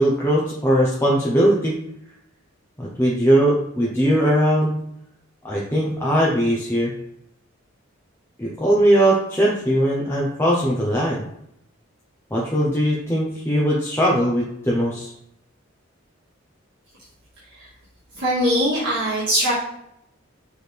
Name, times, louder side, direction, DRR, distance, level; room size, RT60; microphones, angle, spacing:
voice 1, 0.0-1.8 2.8-4.8 5.4-6.9 8.4-11.3 12.3-15.1, equal, 10° left, -5 dB, 0.9 m, -20 dB
voice 2, 18.1-19.5, equal, 55° right, -9 dB, 2.1 m, -21 dB
6.2 x 4.8 x 3.5 m, 0.75 s
head